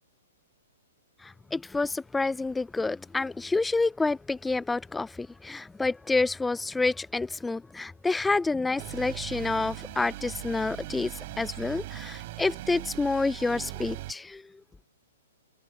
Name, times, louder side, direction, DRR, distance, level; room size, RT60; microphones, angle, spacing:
voice 1, 1.5-11.1 11.4-14.4, left 3 dB, 5° left, 0.8 m, -28 dB
sound 1, 8.8-14.1, right 18 dB, 50° right, 6.7 m, -40 dB
hypercardioid pair, 120°, 0 cm